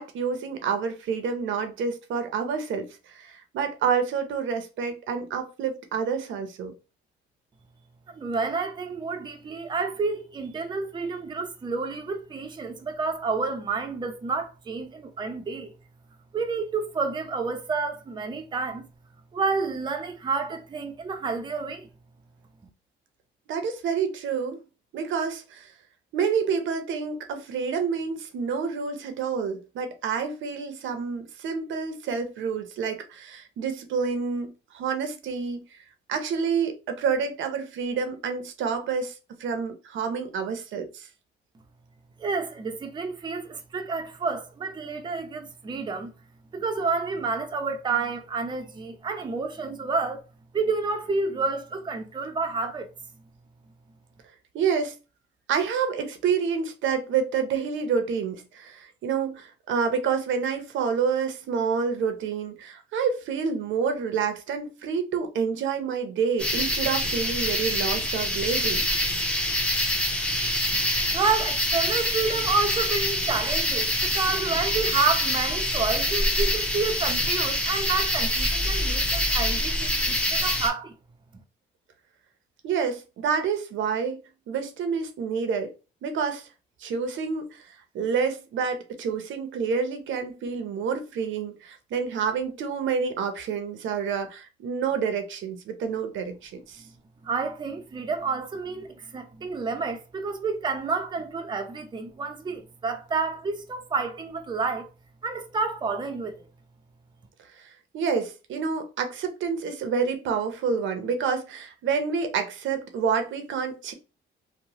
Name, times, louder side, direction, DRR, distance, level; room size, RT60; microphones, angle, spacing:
voice 1, 0.0-6.7 23.5-24.6 24.9-25.7 26.1-35.6 36.1-39.1 39.4-41.1 54.5-55.0 55.5-68.8 82.6-84.2 84.5-85.7 86.0-86.5 86.8-87.7 87.9-96.8 107.6-113.9, right 6 dB, 75° right, 0.6 m, -28 dB
voice 2, 8.1-15.7 16.3-18.8 19.3-21.9 42.2-46.1 46.5-50.2 50.5-52.9 71.1-80.9 97.2-104.9 105.2-106.4, right 4 dB, 25° right, 0.5 m, -29 dB
sound 1, 66.4-80.7, left 1 dB, 5° left, 0.7 m, -25 dB
3.0 x 2.0 x 2.7 m
cardioid pair, 90°, 20 cm